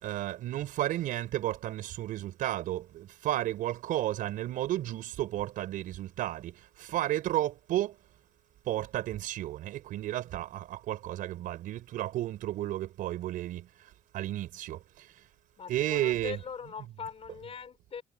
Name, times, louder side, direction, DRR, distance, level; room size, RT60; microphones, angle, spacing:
voice 1, 0.0-7.9 8.7-13.7 14.1-14.8 15.7-16.4, right 14 dB, 70° right, 4.4 m, -32 dB
voice 2, 15.6-18.0, left 6 dB, 40° left, 5.5 m, -41 dB
supercardioid pair, 75°, 15 cm